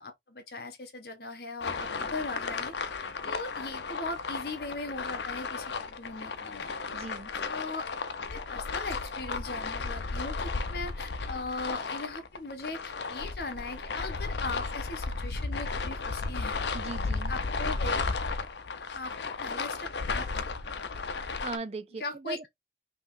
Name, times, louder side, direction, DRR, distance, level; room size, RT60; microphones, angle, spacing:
voice 1, 0.0-2.7 3.2-6.7 7.4-7.9 8.2-16.6 17.3-17.9 18.3-18.4 18.9-19.1 19.4-20.5 22.0-22.4, left 2 dB, 60° left, 1.2 m, -39 dB
sound 1, 1.6-21.6, left 4 dB, 75° left, 0.7 m, -34 dB
voice 2, 6.9-7.3 16.7-17.3 21.2-22.5, right 3 dB, 35° right, 0.4 m, -39 dB
5.6 x 3.0 x 2.6 m
head